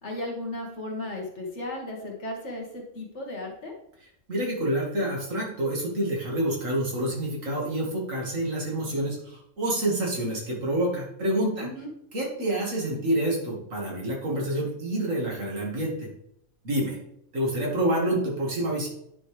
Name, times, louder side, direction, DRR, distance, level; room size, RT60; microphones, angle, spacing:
voice 1, 0.0-3.7 11.6-11.9, left 1 dB, 55° left, 0 dB, 1.8 m, -35 dB
voice 2, 4.3-11.7 12.1-16.1 16.6-17.0 17.3-18.9, right 1 dB, 65° right, -2 dB, 2.3 m, -27 dB
9.8 x 5.3 x 3.3 m, 0.74 s
omnidirectional pair, 1.5 m